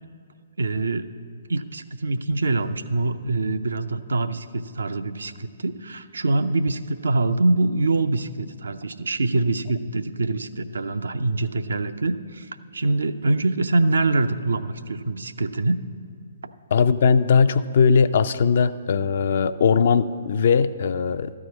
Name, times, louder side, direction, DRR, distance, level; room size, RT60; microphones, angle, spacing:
voice 1, 0.6-1.1 1.5-15.8, right 2 dB, 70° right, 10 dB, 0.5 m, -24 dB
voice 2, 16.7-21.3, left 5 dB, 55° left, 12 dB, 0.4 m, -19 dB
13.0 x 4.8 x 8.2 m, 2.3 s
figure-of-eight pair, 125°, 0 cm